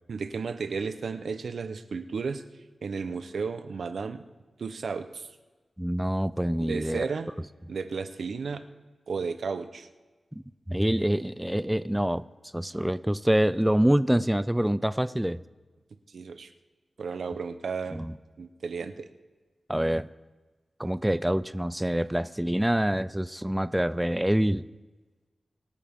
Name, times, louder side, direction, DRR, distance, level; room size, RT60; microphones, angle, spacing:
voice 1, 0.1-2.4 2.8-4.2 4.6-5.3 6.6-7.3 7.7-8.6 9.1-9.9 16.1-16.5 17.0-18.1 18.4-19.1, right 5 dB, 80° right, 10 dB, 0.8 m, -33 dB
voice 2, 5.8-7.1 10.3-12.2 12.5-15.4 17.9-18.1 19.7-20.1 20.8-24.6, equal, 10° right, 16 dB, 0.4 m, -26 dB
24.0 x 8.6 x 3.6 m, 1.2 s
cardioid pair, 55°, 0 cm